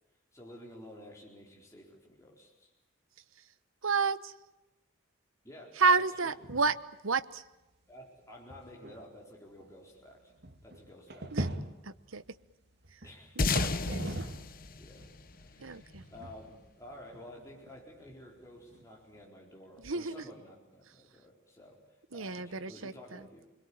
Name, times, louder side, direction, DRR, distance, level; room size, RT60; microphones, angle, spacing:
voice 1, 0.3-2.7 5.4-5.8 6.2-6.3 7.9-10.3 10.6-11.4 13.0-13.5 14.8-15.1 15.4-23.5, left 1 dB, 15° left, 4.4 m, -52 dB
voice 2, 3.8-4.3 5.8-6.8 7.0-7.4 11.3-11.5 11.8-12.2 12.9-13.0 13.4-14.2 15.6-16.0 19.8-20.2 22.1-23.3, right 4 dB, 70° right, 1.1 m, -31 dB
sound 1, 6.3-6.8 7.2-7.3 7.9-8.0 8.5-14.6 14.9-19.2, right 1 dB, 50° right, 2.4 m, -42 dB
sound 2, 13.4-16.2, left 3 dB, 45° left, 1.0 m, -33 dB
28.5 x 22.0 x 8.7 m
head